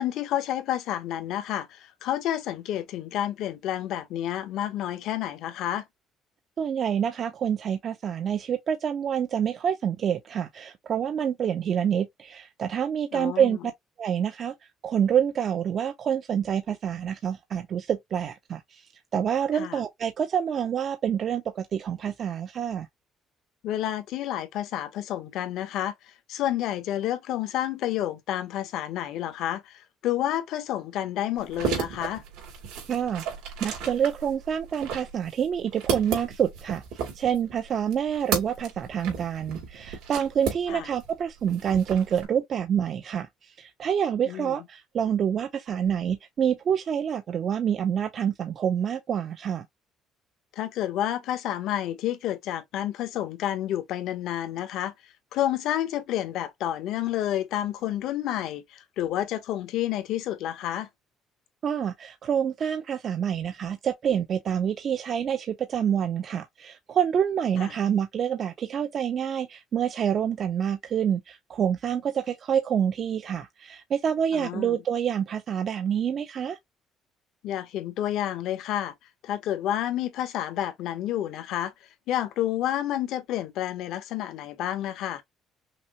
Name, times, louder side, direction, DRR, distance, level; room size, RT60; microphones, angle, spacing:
voice 1, 0.0-5.8 13.1-13.5 19.5-19.8 23.6-32.2 40.7-40.9 44.2-44.6 50.5-60.9 67.6-67.7 74.3-74.8 77.4-78.9 79.2-85.2, left 12 dB, 75° left, 1.0 m, -30 dB
voice 2, 6.6-13.6 14.0-14.5 14.8-22.9 32.9-33.2 33.6-49.7 61.6-76.6, right 8 dB, 50° right, 0.6 m, -27 dB
sound 1, 31.4-41.1 41.4-42.2, right 7 dB, 90° right, 2.6 m, -33 dB
5.9 x 2.0 x 2.9 m
cardioid pair, 95°, 0 cm